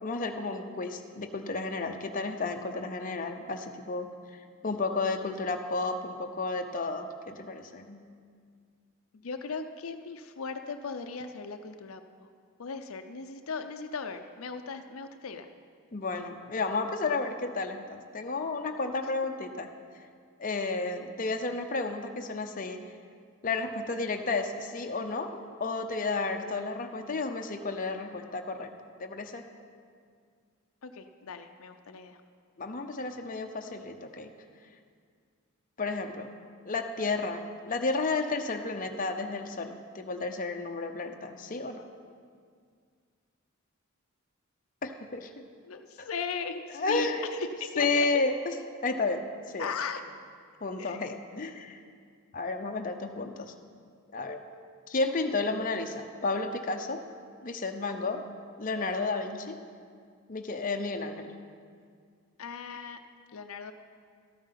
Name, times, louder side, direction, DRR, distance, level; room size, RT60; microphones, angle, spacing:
voice 1, 0.0-8.0 15.9-19.7 20.4-22.8 23.4-28.7 29.0-29.5 32.6-34.3 35.8-36.3 36.6-41.9 44.8-45.4 46.0-46.1 46.7-47.3 47.8-48.3 48.8-49.7 50.6-51.8 52.3-53.5 54.1-54.4 54.9-57.0 57.4-58.2 58.6-59.6 60.3-61.3, left 3 dB, 40° left, 4 dB, 0.7 m, -32 dB
voice 2, 9.1-12.3 12.6-15.5 30.8-32.2 45.6-48.1 49.6-50.0 50.8-51.0 62.4-63.0 63.3-63.7, left 5 dB, 75° left, 7 dB, 0.6 m, -38 dB
13.0 x 9.0 x 5.7 m, 2.1 s
head